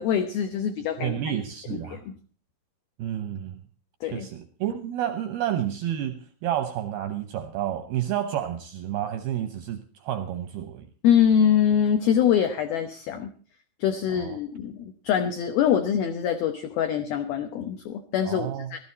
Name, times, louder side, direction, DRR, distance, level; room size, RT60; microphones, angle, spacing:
voice 1, 0.0-1.2 1.7-2.1 4.0-4.3 11.0-13.3 13.8-18.8, left 9 dB, 70° left, 5 dB, 2.4 m, -24 dB
voice 2, 1.0-2.0 3.0-3.6 4.0-10.9 14.1-14.4 18.2-18.8, right 11 dB, 75° right, 8 dB, 2.3 m, -30 dB
17.0 x 12.5 x 4.2 m, 0.41 s
omnidirectional pair, 5.6 m